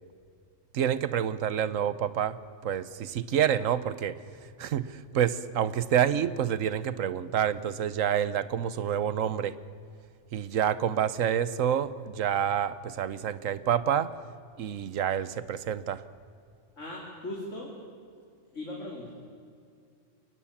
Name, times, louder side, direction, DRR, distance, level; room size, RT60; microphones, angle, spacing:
voice 1, 0.7-2.4 2.6-4.1 4.6-9.5 10.3-14.1 14.6-16.0, right 9 dB, 85° right, 15 dB, 1.2 m, -28 dB
voice 2, 16.8-17.7 18.5-19.1, left 1 dB, 70° left, -2 dB, 3.3 m, -38 dB
23.0 x 19.0 x 7.3 m, 2.3 s
omnidirectional pair, 1.3 m